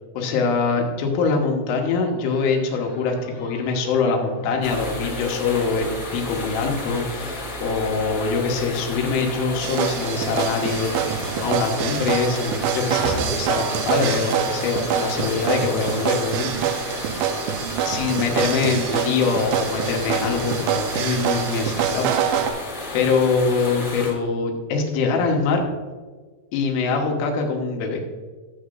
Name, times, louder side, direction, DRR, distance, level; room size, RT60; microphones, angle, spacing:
voice 1, 0.2-16.7 17.0-17.2 17.9-22.1 22.9-25.6 26.5-28.0, left 4 dB, 75° left, 2 dB, 3.6 m, -23 dB
sound 1, 1.7-18.4, left 3 dB, 55° left, 3.0 m, -41 dB
sound 2, 4.6-24.1, left 2 dB, 35° left, 1.3 m, -33 dB
sound 3, 9.6-22.5, right 8 dB, 85° right, 2.7 m, -25 dB
13.5 x 7.9 x 2.6 m, 1.4 s
omnidirectional pair, 5.7 m